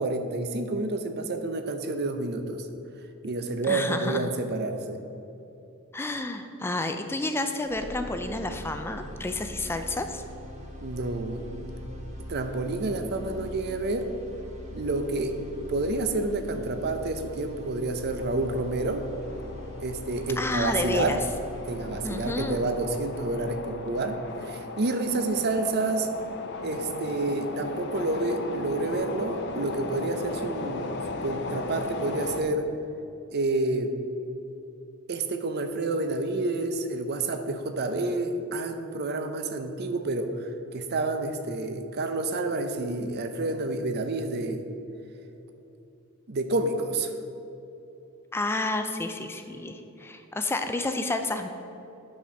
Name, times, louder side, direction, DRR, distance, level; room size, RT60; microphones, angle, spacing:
voice 1, 0.0-2.7 3.2-5.0 10.8-11.7 12.3-14.1 14.7-15.4 15.7-19.0 19.8-21.2 21.7-26.1 26.6-30.9 31.2-32.7 33.3-33.9 35.1-44.6 46.3-47.1, right 2 dB, 50° right, 7 dB, 0.6 m, -29 dB
voice 2, 3.7-4.3 5.9-10.2 20.4-21.2 22.0-22.6 48.3-51.5, left 2 dB, 10° left, 6 dB, 0.4 m, -30 dB
sound 1, 7.6-25.7, equal, 35° right, 1.0 m, -42 dB
sound 2, 18.2-32.4, left 2 dB, 55° left, 0.6 m, -37 dB
8.9 x 4.3 x 6.2 m, 2.9 s
head